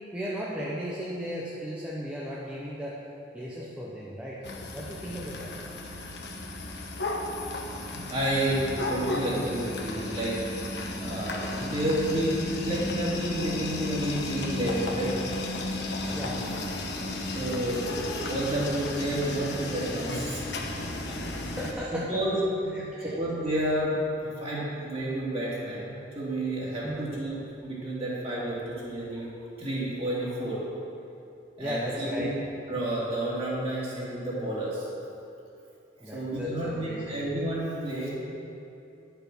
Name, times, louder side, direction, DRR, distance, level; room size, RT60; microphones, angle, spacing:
voice 1, 0.1-2.9 3.3-4.4 4.7-5.5 16.0-16.6 21.3-22.2 22.7-23.1 26.8-27.1 31.6-32.3 36.0-37.1, equal, 5° right, -7 dB, 1.0 m, -36 dB
sound 1, 4.4-21.7, left 2 dB, 65° left, 1.2 m, -34 dB
voice 2, 7.9-10.4 11.0-15.1 17.3-17.8 18.1-20.5 21.9-24.0 24.4-27.4 27.6-29.3 29.6-30.6 31.6-32.3 32.7-34.9 36.0-38.1, right 1 dB, 35° right, -7 dB, 2.7 m, -30 dB
10.5 x 6.9 x 6.2 m, 2.7 s
head